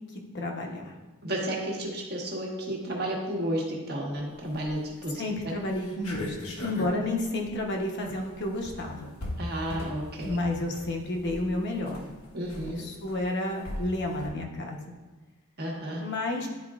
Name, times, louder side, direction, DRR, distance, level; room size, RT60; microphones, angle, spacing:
voice 1, 0.3-0.9 5.1-9.1 10.2-12.0 12.6-14.8 16.0-16.5, left 2 dB, 50° left, 1 dB, 0.9 m, -31 dB
voice 2, 1.2-5.2 9.4-10.4 12.3-12.8 15.6-16.0, right 1 dB, 45° right, -2 dB, 1.3 m, -32 dB
sound 1, 4.5-5.0 5.4-5.5 5.7-14.3, left 1 dB, 70° left, 1.1 m, -40 dB
10.5 x 4.3 x 2.4 m, 1.2 s
head